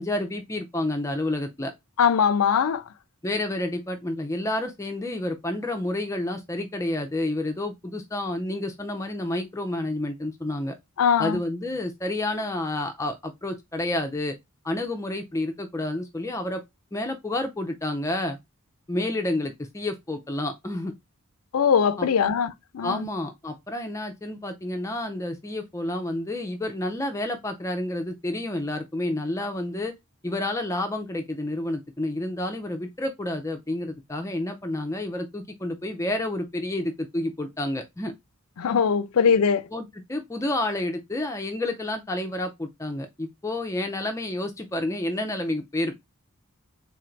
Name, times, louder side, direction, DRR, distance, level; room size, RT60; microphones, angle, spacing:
voice 1, 0.0-1.7 3.2-10.8 11.2-14.4 14.6-16.6 16.9-18.4 18.9-20.9 22.0-22.3 22.8-29.9 30.2-38.1 39.7-46.0, left 1 dB, 15° left, 0.4 m, -29 dB
voice 2, 2.0-2.8 11.0-11.4 21.5-23.0 38.6-39.7, left 7 dB, 75° left, 0.4 m, -21 dB
3.8 x 2.5 x 4.3 m
head